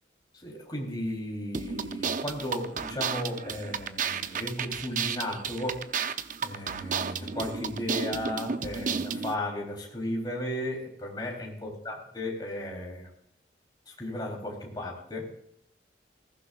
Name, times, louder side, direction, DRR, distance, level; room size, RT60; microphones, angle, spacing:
voice 1, 0.3-5.9 6.4-13.1 13.9-15.3, left 1 dB, 25° left, -1 dB, 3.6 m, -35 dB
sound 1, 1.5-9.3, right 6 dB, 45° right, 0.7 m, -32 dB
19.5 x 15.0 x 2.5 m, 0.71 s
head